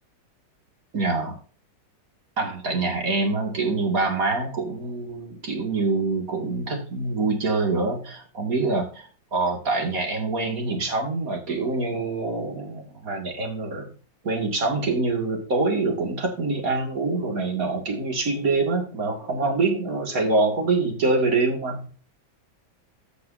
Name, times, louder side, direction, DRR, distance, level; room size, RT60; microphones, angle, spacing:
voice 1, 0.9-1.4 2.4-13.9 14.2-21.9, right 3 dB, 50° right, 3 dB, 2.7 m, -25 dB
14.5 x 5.9 x 2.7 m, 0.38 s
omnidirectional pair, 1.9 m